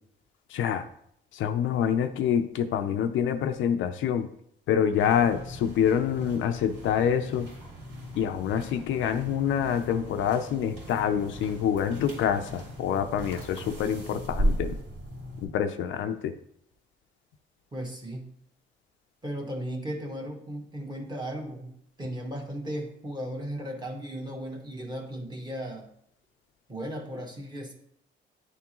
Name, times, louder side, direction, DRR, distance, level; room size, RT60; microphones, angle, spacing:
voice 1, 0.5-0.8 1.3-4.3 4.7-7.5 8.2-14.8 15.4-16.4, left 8 dB, 80° left, 8 dB, 0.5 m, -26 dB
sound 1, 5.0-15.4, equal, 60° right, 2.5 m, -36 dB
voice 2, 17.7-18.3 19.2-25.9 26.7-27.7, equal, 20° right, 1 dB, 1.4 m, -36 dB
9.6 x 3.6 x 3.0 m, 0.69 s
cardioid pair, 90°, 20 cm